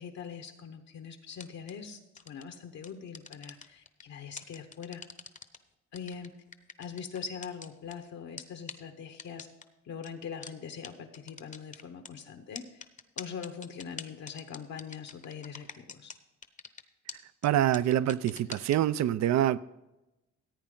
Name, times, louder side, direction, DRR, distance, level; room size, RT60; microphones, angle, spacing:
voice 1, 0.0-2.0 2.3-5.0 5.9-6.3 6.8-9.5 9.8-12.8 13.2-16.1, left 6 dB, 65° left, 1.1 m, -42 dB
sound 1, 1.3-1.7 2.2-2.4 2.8-4.0 4.4-5.6 5.9-7.9 8.4-8.5 8.7-8.8 9.2-9.6 10.0-10.1 10.4-10.5 10.8-10.9 11.1-12.1 12.5-16.2 16.4-16.8 17.1-17.2 17.4-17.5 17.7-18.8, left 5 dB, 25° left, 0.8 m, -43 dB
voice 2, 17.4-19.6, right 12 dB, 65° right, 0.5 m, -26 dB
15.0 x 8.7 x 3.9 m
cardioid pair, 90°, 30 cm